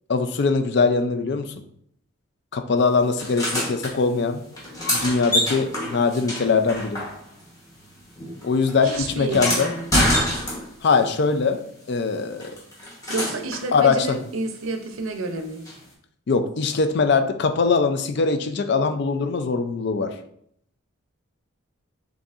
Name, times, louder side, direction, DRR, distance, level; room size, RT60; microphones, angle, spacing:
voice 1, 0.1-1.5 2.5-4.4 4.9-7.0 8.4-9.7 10.8-11.6 11.9-12.5 13.7-14.2 16.3-20.1, left 4 dB, 50° left, 8 dB, 0.4 m, -22 dB
sound 1, 3.2-3.9 4.5-7.5 7.8-10.9 12.4-13.7 15.6-15.7, left 1 dB, 15° left, 1.0 m, -26 dB
voice 2, 8.8-9.9 13.1-15.7, right 2 dB, 75° right, 6 dB, 0.6 m, -30 dB
6.8 x 2.7 x 2.4 m, 0.68 s
head